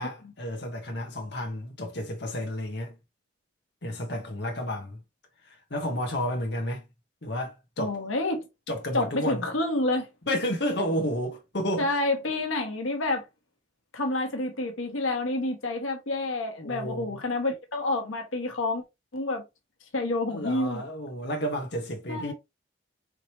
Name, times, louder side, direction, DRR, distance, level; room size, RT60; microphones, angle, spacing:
voice 1, 0.0-2.9 3.8-5.0 5.4-6.8 7.2-7.9 8.7-9.4 10.3-11.9 16.6-17.2 20.3-22.3, equal, 55° left, 1.2 m, -31 dB
voice 2, 7.8-8.5 8.9-10.1 11.8-13.2 13.9-18.8 19.1-19.4 19.9-20.8 22.1-22.3, left 2 dB, 90° left, 1.4 m, -28 dB
5.0 x 3.2 x 3.0 m
head